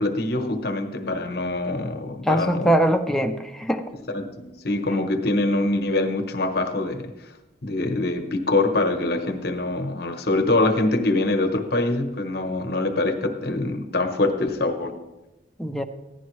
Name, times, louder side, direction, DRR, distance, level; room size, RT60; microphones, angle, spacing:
voice 1, 0.0-2.7 4.1-7.1 7.6-15.0, left 2 dB, 55° left, 6 dB, 1.0 m, -24 dB
voice 2, 2.2-3.9 15.6-15.8, right 1 dB, ahead, 4 dB, 0.6 m, -22 dB
15.0 x 11.0 x 3.2 m, 1.0 s
head